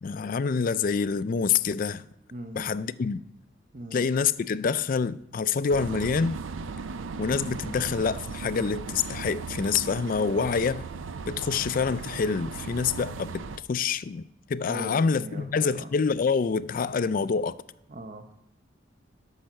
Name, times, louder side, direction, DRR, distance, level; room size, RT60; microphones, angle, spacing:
voice 1, 0.0-2.1 2.6-3.2 3.9-6.4 7.2-10.9 11.3-17.6, left 5 dB, 45° left, 0.3 m, -27 dB
voice 2, 2.3-2.7 3.7-4.1 14.7-15.9 17.9-18.3, right 1 dB, 45° right, 0.8 m, -39 dB
sound 1, 5.7-13.6, right 4 dB, 85° right, 0.5 m, -37 dB
12.0 x 5.7 x 6.5 m
head